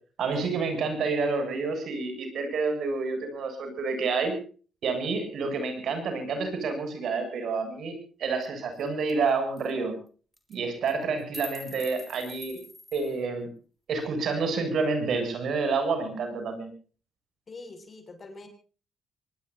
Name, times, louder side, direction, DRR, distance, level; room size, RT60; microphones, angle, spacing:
voice 1, 0.2-4.3 4.8-7.9 8.2-10.0 10.5-12.6 12.9-13.5 13.9-16.7, right 4 dB, 65° right, 7 dB, 7.7 m, -29 dB
sound 1, 8.4-8.5 8.8-8.9 9.1-9.3 9.6-9.7 10.3-10.6 10.9-13.2, equal, ahead, 3.5 m, -45 dB
voice 2, 17.5-18.5, left 3 dB, 35° left, 8 dB, 6.6 m, -44 dB
25.5 x 20.0 x 2.7 m, 0.39 s
cardioid pair, 90°, 0 cm